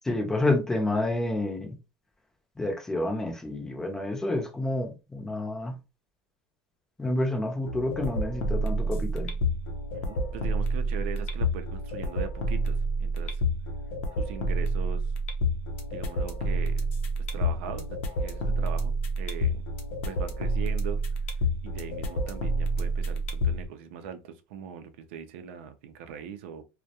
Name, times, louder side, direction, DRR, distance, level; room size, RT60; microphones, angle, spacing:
voice 1, 0.1-1.7 2.6-5.8 7.0-9.3, left 2 dB, 10° left, 0.6 m, -29 dB
sound 1, 7.7-23.7, right 1 dB, 85° left, 0.5 m, -29 dB
voice 2, 9.9-13.4 14.2-15.1 15.9-16.8 17.2-19.6 20.0-21.0 21.6-26.6, right 7 dB, 80° right, 0.4 m, -40 dB
2.3 x 2.1 x 2.7 m
supercardioid pair, 150°, 7 cm